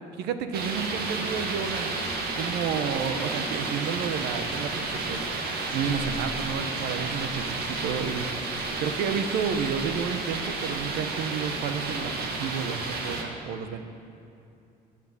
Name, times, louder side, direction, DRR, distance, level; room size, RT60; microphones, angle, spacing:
voice 1, 0.2-1.9 2.3-5.3 5.7-8.2 8.8-13.8, right 7 dB, 85° right, 9 dB, 1.0 m, -31 dB
sound 1, 0.5-13.2, right 3 dB, 65° right, 2.0 m, -31 dB
11.0 x 10.5 x 9.8 m, 2.6 s
cardioid pair, 110°, 17 cm